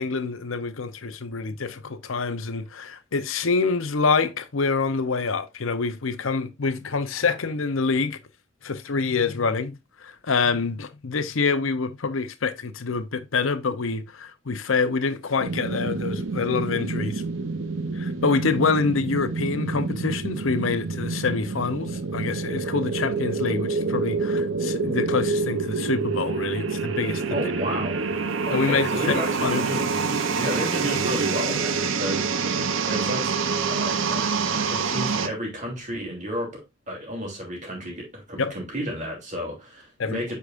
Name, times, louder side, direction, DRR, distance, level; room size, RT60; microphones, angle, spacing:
voice 1, 0.0-8.2 8.6-17.2 17.9-27.4 28.5-29.6 38.4-38.5 40.0-40.2, left 4 dB, 85° left, 0.7 m, -26 dB
sound 1, 15.4-35.3, right 4 dB, 75° right, 0.7 m, -27 dB
voice 2, 27.3-28.0 28.5-33.3 33.6-36.6 36.9-40.4, equal, 35° right, 2.9 m, -32 dB
8.5 x 4.8 x 2.5 m
head